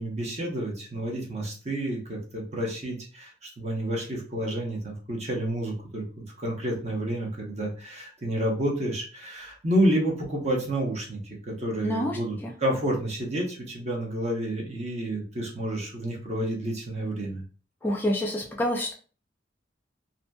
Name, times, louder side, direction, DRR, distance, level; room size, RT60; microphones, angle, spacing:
voice 1, 0.0-17.4, right 1 dB, 35° right, 0 dB, 0.8 m, -29 dB
voice 2, 11.8-12.2 12.4-12.5 17.8-18.9, left 1 dB, 10° left, -1 dB, 0.4 m, -27 dB
2.8 x 2.5 x 2.2 m, 0.37 s
head